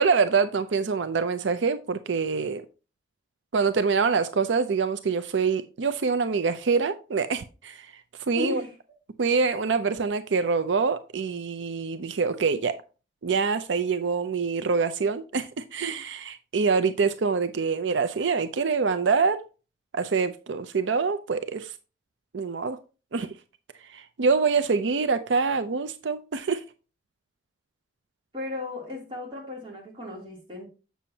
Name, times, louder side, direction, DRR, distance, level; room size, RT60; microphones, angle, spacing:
voice 1, 0.0-2.6 3.5-7.9 8.3-8.6 9.2-12.8 13.2-19.4 19.9-21.7 22.3-22.8 23.1-23.3 23.9-26.6, right 5 dB, 85° right, 0.5 m, -25 dB
voice 2, 8.3-8.7 28.3-30.7, left 2 dB, 25° right, 3.0 m, -35 dB
7.3 x 7.0 x 2.8 m
head